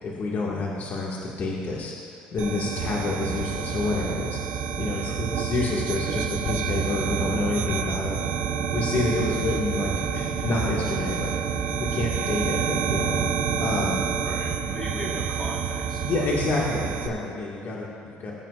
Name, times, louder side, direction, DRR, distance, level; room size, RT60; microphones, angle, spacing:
voice 1, 0.0-8.1 8.7-13.3 13.6-14.0 16.0-18.3, left 2 dB, 50° left, -4 dB, 1.8 m, -28 dB
sound 1, 2.4-17.1, right 7 dB, 65° right, 0.9 m, -28 dB
voice 2, 14.2-16.3, left 1 dB, 20° left, -3 dB, 1.5 m, -38 dB
20.5 x 9.0 x 2.5 m, 2.3 s
supercardioid pair, 80°, 4 cm